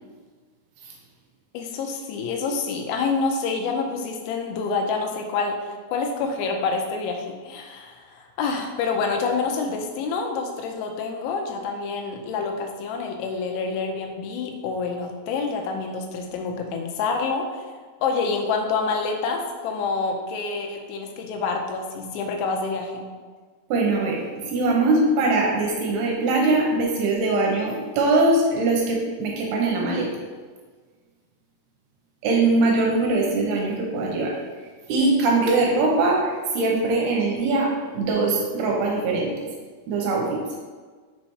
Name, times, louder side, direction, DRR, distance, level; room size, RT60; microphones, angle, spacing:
voice 1, 1.5-17.6 18.0-23.1, left 4 dB, 90° left, 2 dB, 3.1 m, -27 dB
voice 2, 23.7-30.1 32.2-34.4 34.9-39.5 39.9-40.4, right 2 dB, 75° right, -1 dB, 2.7 m, -22 dB
6.6 x 4.2 x 4.7 m, 1.5 s
omnidirectional pair, 5.2 m